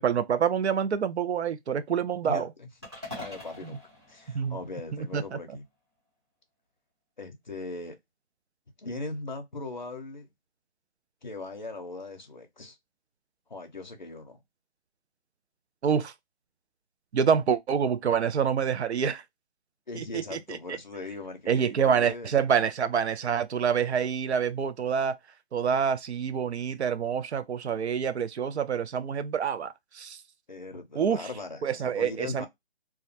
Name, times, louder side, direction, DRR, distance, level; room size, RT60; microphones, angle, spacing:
voice 1, 0.0-2.5 4.3-4.6 4.9-5.4 15.8-16.1 17.1-19.2 19.9-20.4 21.5-25.2 25.5-30.2 31.0-31.3 31.6-32.5, right 7 dB, 75° right, 0.5 m, -27 dB
voice 2, 2.2-2.7 3.0-3.8 4.1-5.6 7.2-8.0 8.8-10.3 11.2-12.8 13.5-14.4 19.9-22.3 30.5-32.5, left 3 dB, 45° left, 0.5 m, -39 dB
sound 1, 2.8-5.2, left 2 dB, 25° right, 0.9 m, -44 dB
2.3 x 2.1 x 2.6 m
hypercardioid pair, 180°, 33 cm